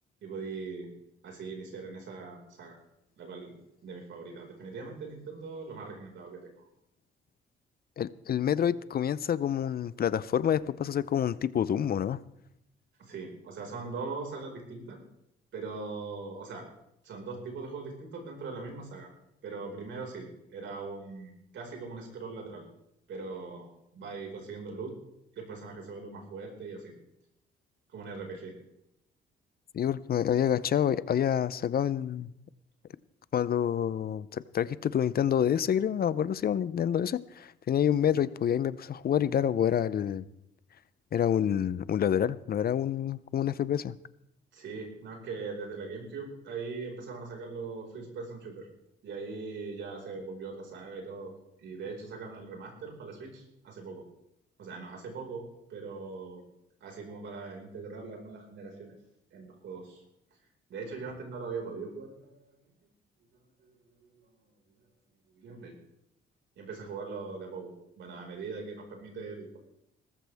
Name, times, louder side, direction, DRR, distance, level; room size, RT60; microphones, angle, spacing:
voice 1, 0.2-0.9 1.2-2.7 3.2-3.5 3.8-6.6 13.0-15.0 15.5-16.6 17.0-19.1 19.4-20.3 20.5-22.6 23.1-23.7 23.9-24.9 25.3-26.9 27.9-28.5 44.5-48.7 49.0-51.3 51.6-54.0 54.6-56.4 56.8-58.9 59.3-60.0 60.7-62.7 63.3-64.9 65.4-65.7 66.6-69.6, right 4 dB, 70° right, 1 dB, 5.1 m, -41 dB
voice 2, 8.0-12.2 29.7-32.3 33.3-40.2 41.1-43.9, left 9 dB, 50° left, 17 dB, 0.6 m, -28 dB
18.0 x 14.5 x 3.5 m, 0.82 s
cardioid pair, 90°, 20 cm